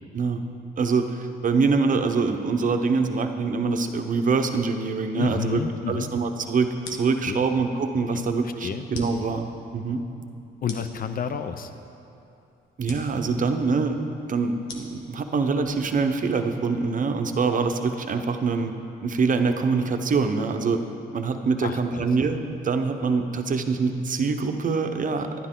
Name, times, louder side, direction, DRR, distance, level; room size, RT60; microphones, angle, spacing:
voice 1, 0.8-5.6 5.9-10.0 12.8-14.0 14.3-18.7 19.0-20.8 21.1-25.3, right 4 dB, 40° right, 6 dB, 0.8 m, -24 dB
voice 2, 5.2-6.1 7.3-7.4 8.1-8.9 10.6-11.7 21.6-22.0, left 7 dB, 45° left, 9 dB, 0.6 m, -30 dB
sound 1, 6.8-16.6, left 3 dB, 90° left, 1.1 m, -45 dB
11.5 x 9.9 x 3.7 m, 2.7 s
cardioid pair, 90°, 20 cm